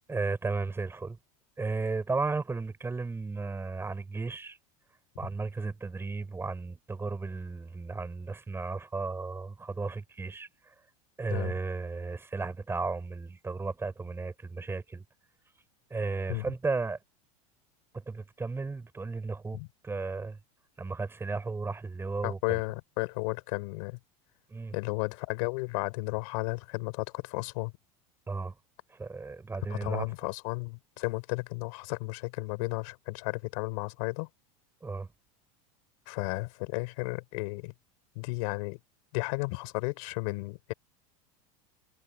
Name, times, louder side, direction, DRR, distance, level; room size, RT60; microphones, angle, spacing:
voice 1, 0.1-1.2 1.6-4.6 5.2-10.7 11.2-15.0 15.9-17.0 17.9-20.4 20.8-22.6 24.5-24.7 28.3-28.6 28.9-30.0 34.8-35.1, right 3 dB, 15° right, 5.8 m, -34 dB
voice 2, 22.2-24.0 24.7-27.7 29.7-34.3 36.1-37.7 38.2-38.8 39.1-40.7, left 28 dB, 70° left, 5.3 m, -33 dB
supercardioid pair, 125°, 18 cm